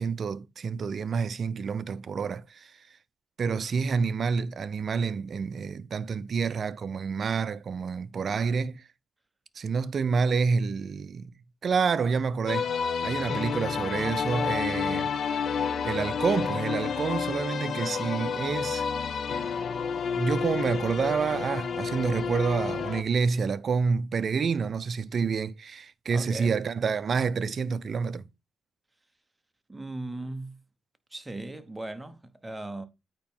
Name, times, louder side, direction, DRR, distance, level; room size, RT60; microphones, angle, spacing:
voice 1, 0.0-2.7 3.4-8.8 9.6-11.3 11.6-12.7 13.0-15.1 15.5-18.8 20.2-28.3, right 5 dB, 50° right, 0.5 m, -28 dB
sound 1, 12.5-23.0, left 6 dB, 55° left, 0.7 m, -30 dB
voice 2, 26.1-26.7 29.7-30.6 31.1-32.9, right 2 dB, 10° right, 0.9 m, -38 dB
8.7 x 2.9 x 5.4 m
cardioid pair, 105°, 0 cm